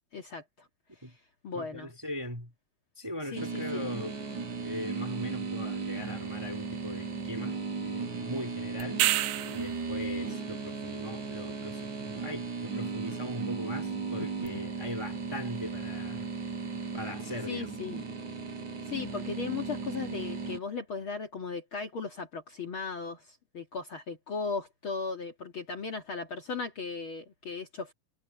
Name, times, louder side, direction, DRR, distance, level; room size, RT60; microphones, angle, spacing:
voice 1, 0.1-0.7 1.4-1.9 3.3-3.9 17.5-18.0 18.9-27.9, left 5 dB, 45° left, 2.2 m, -37 dB
voice 2, 1.5-2.5 3.0-4.1 4.6-9.1 9.4-16.3 16.9-17.7, left 1 dB, 10° right, 2.2 m, -40 dB
sound 1, 3.4-20.6, right 4 dB, 65° right, 5.7 m, -36 dB
sound 2, 8.8-9.8 14.5-14.6, right 15 dB, 90° right, 2.3 m, -27 dB
omnidirectional pair, 3.6 m